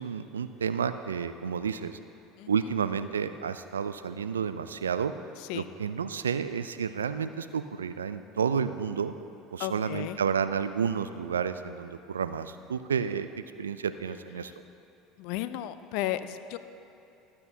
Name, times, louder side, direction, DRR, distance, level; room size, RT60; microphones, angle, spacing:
voice 1, 0.0-2.0 2.5-5.1 5.5-9.1 9.5-13.3 13.6-14.5, right 7 dB, 85° right, 11 dB, 0.4 m, -31 dB
voice 2, 9.6-10.2 15.2-16.6, left 13 dB, 65° left, 12 dB, 0.5 m, -33 dB
18.5 x 8.4 x 2.8 m, 2.8 s
hypercardioid pair, 70°, 0 cm